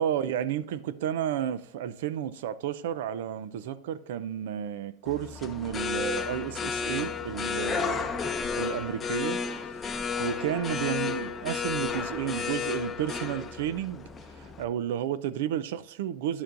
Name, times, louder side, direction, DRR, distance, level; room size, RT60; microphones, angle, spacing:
voice 1, 0.0-9.4 9.9-14.0 14.3-16.4, right 10 dB, 75° right, 0.5 m, -32 dB
sound 1, 5.0-14.6, left 6 dB, 15° left, 0.7 m, -32 dB
10.5 x 7.0 x 2.6 m
supercardioid pair, 160°, 0 cm